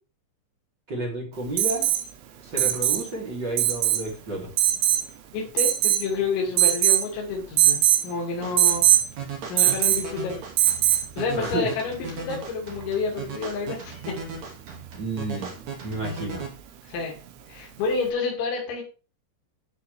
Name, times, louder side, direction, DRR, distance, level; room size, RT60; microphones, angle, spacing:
voice 1, 0.9-1.9 2.4-4.5 11.4-11.7 14.9-15.5 15.8-16.4, right 2 dB, 25° right, -2 dB, 3.5 m, -31 dB
Alarm, 1.6-2.0 2.6-3.1 3.6-4.0 4.6-5.1 5.6-6.1 6.6-7.1 7.6-8.0 8.6-9.1 9.6-10.1 10.6-11.1 12.8-12.9, right 13 dB, 80° right, 3.8 m, -20 dB
voice 2, 5.3-8.9 9.5-10.4 11.2-14.2 16.9-17.1 17.5-18.8, left 4 dB, 75° left, -2 dB, 5.3 m, -29 dB
sound 1, 8.4-16.5, right 5 dB, 45° right, 3.2 m, -37 dB
13.5 x 7.4 x 3.6 m, 0.35 s
omnidirectional pair, 5.4 m